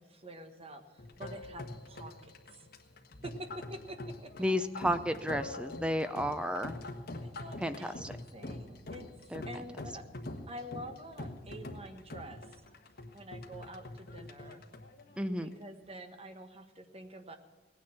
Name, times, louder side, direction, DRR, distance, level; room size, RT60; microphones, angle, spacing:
voice 1, 0.0-2.7 3.2-4.3 7.2-8.0 8.3-10.0 10.5-12.6 13.1-14.6 15.4-17.4, equal, 35° right, 7 dB, 1.2 m, -47 dB
sound 1, 1.0-15.9, left 2 dB, 60° left, 1.5 m, -45 dB
voice 2, 4.4-6.8 7.6-8.1 9.3-9.4 15.2-15.5, equal, 5° right, 10 dB, 0.5 m, -32 dB
17.5 x 9.7 x 5.9 m, 1.2 s
head